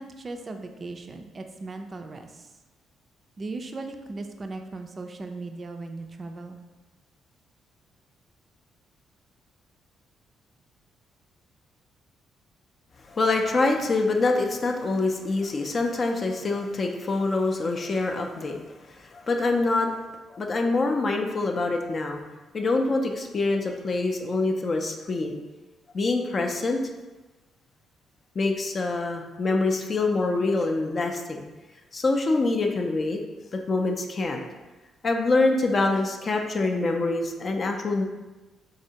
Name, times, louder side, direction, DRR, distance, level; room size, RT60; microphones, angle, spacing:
voice 1, 0.0-2.3 3.4-6.6, right 3 dB, 35° right, 6 dB, 0.4 m, -37 dB
voice 2, 13.1-18.6 18.9-19.9 20.3-22.2 22.5-25.4 25.9-26.8 28.4-31.5 31.9-33.2 33.5-34.4 35.0-38.1, left 3 dB, 40° left, 3 dB, 0.4 m, -25 dB
3.7 x 3.2 x 2.7 m, 1.2 s
cardioid pair, 90°, 0 cm